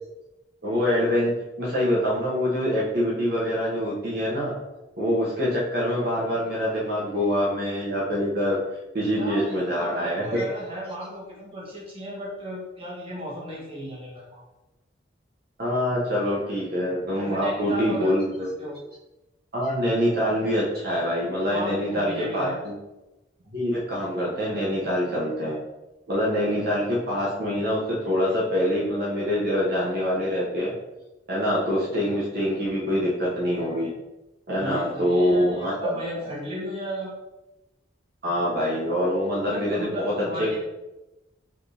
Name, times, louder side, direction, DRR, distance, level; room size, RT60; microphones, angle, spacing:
voice 1, 0.6-4.5 5.0-8.6 8.9-10.4 15.6-18.5 19.5-22.8 23.5-25.6 26.1-30.7 31.3-33.9 34.5-36.2 38.2-40.1 40.4-40.5, equal, 55° right, -6 dB, 1.0 m, -25 dB
voice 2, 9.1-14.4 17.2-18.1 18.6-18.8 21.5-22.6 34.5-37.1 39.5-40.6, equal, 30° right, -5 dB, 1.3 m, -34 dB
4.7 x 3.5 x 2.6 m, 1.0 s
head